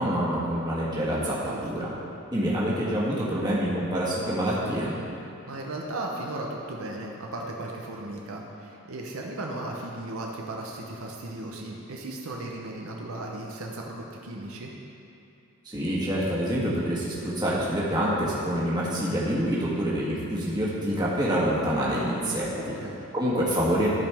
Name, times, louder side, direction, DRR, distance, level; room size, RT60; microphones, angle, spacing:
voice 1, 0.0-1.9 2.3-4.9 15.6-22.5 23.1-23.9, equal, 20° right, -7 dB, 1.5 m, -26 dB
voice 2, 1.4-1.9 5.5-14.7 22.6-23.0, right 2 dB, 70° right, -1 dB, 0.8 m, -36 dB
13.5 x 5.2 x 3.5 m, 2.8 s
head